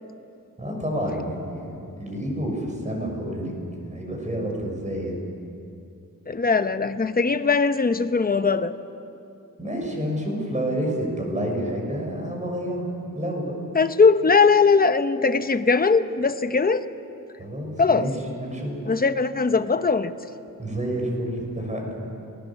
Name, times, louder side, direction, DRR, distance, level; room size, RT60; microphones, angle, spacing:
voice 1, 0.6-3.5 3.8-5.2 9.6-12.9 13.1-13.5 17.4-18.8 20.6-21.9, equal, 20° right, 0 dB, 5.9 m, -29 dB
voice 2, 6.3-8.7 13.7-16.8 17.8-18.1 18.9-20.2, left 4 dB, 25° left, 10 dB, 0.8 m, -20 dB
30.0 x 21.0 x 7.1 m, 2.6 s
wide cardioid pair, 170°, 34 cm